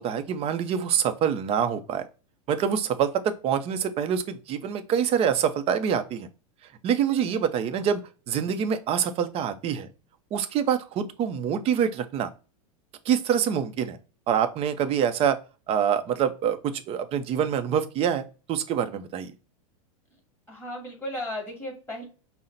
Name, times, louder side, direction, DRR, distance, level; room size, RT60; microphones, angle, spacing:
voice 1, 0.0-2.0 2.5-6.3 6.8-8.0 8.3-9.9 10.3-12.3 13.1-14.0 14.3-15.4 15.7-18.2 18.5-19.3, right 8 dB, 30° right, 9 dB, 0.6 m, -25 dB
voice 2, 7.1-7.5 20.5-22.0, left 1 dB, 10° left, -1 dB, 2.1 m, -35 dB
5.6 x 2.1 x 3.8 m, 0.34 s
supercardioid pair, 135°, 19 cm